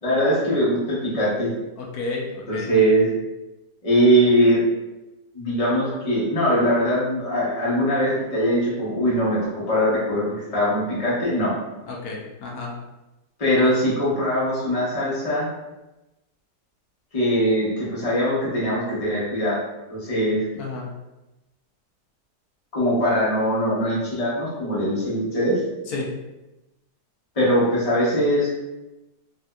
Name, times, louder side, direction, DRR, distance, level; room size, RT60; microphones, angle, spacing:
voice 1, 0.0-1.5 2.5-3.1 3.8-4.6 5.3-10.2 10.5-11.5 13.4-15.5 17.1-19.6 19.9-20.4 22.7-25.6 27.4-28.5, equal, 25° left, -8 dB, 1.0 m, -21 dB
voice 2, 1.8-2.7 11.9-12.7 13.6-13.8 20.5-20.9 25.9-26.1, left 3 dB, 65° left, -2 dB, 1.0 m, -32 dB
3.4 x 2.7 x 2.3 m, 1.0 s
omnidirectional pair, 2.0 m